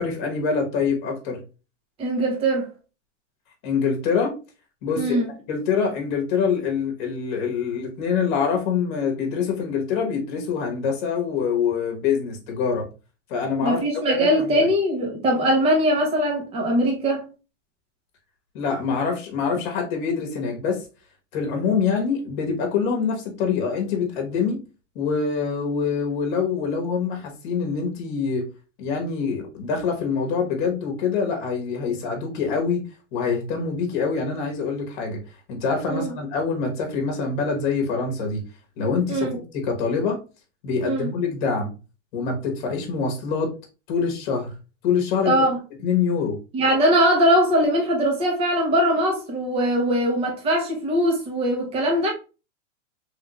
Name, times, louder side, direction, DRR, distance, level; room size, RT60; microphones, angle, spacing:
voice 1, 0.0-1.4 3.6-4.3 4.8-5.2 5.5-12.9 13.3-13.8 14.1-14.3 14.5-14.6 18.5-20.8 21.3-24.6 24.9-28.4 28.8-32.8 33.1-35.2 35.5-38.4 38.8-39.3 39.5-40.2 40.6-41.7 42.1-43.5 43.9-44.5 44.8-45.3 45.8-46.4, left 5 dB, 40° left, 1.1 m, -25 dB
voice 2, 2.0-2.7 5.0-5.3 13.6-17.3 31.9-32.0 35.9-36.1 39.1-39.4 40.8-41.1 45.2-45.6 46.5-52.1, equal, 15° right, 0.7 m, -21 dB
3.3 x 2.5 x 3.0 m
supercardioid pair, 155°, 37 cm